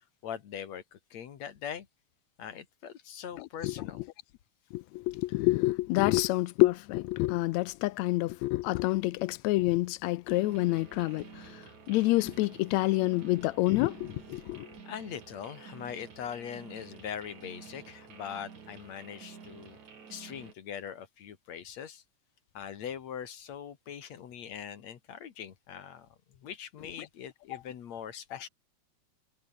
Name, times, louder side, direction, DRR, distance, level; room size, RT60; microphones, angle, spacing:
voice 1, 0.2-1.9 2.4-4.0 14.8-19.8 20.1-22.0 22.5-28.5, left 8 dB, 65° left, 2.9 m, -42 dB
voice 2, 4.7-14.7, left 19 dB, 80° left, 1.7 m, -28 dB
sound 1, 10.3-20.5, right 6 dB, 65° right, 5.0 m, -50 dB
omnidirectional pair, 3.5 m